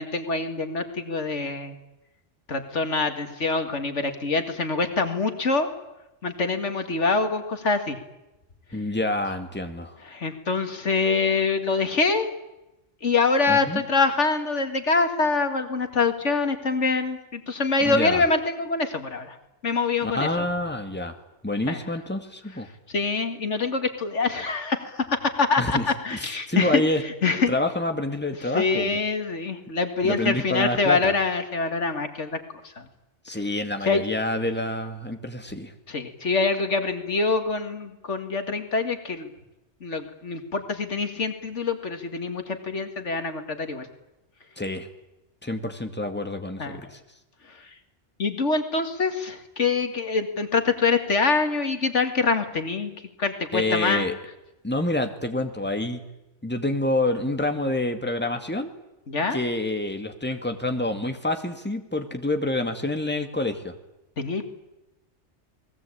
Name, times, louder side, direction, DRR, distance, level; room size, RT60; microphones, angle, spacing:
voice 1, 0.0-1.8 2.5-5.7 6.2-8.0 10.1-12.3 13.0-19.3 19.6-20.4 21.7-21.8 22.9-26.8 27.2-27.5 28.5-32.4 32.8-32.9 33.9-34.0 35.9-39.3 39.8-43.9 46.6-46.9 48.2-52.9 53.2-54.1 59.1-59.4 64.2-64.5, left 4 dB, 85° left, 7 dB, 2.4 m, -25 dB
voice 2, 8.7-10.0 13.5-13.8 17.8-18.2 20.0-21.1 21.4-22.7 25.6-25.9 26.1-27.0 27.5-29.0 30.0-31.1 33.2-35.7 44.6-44.9 45.4-47.0 53.5-54.1 54.6-56.0 56.4-58.8 59.3-63.7, left 2 dB, 10° left, 6 dB, 2.1 m, -27 dB
29.5 x 20.5 x 8.7 m, 0.94 s
omnidirectional pair, 1.2 m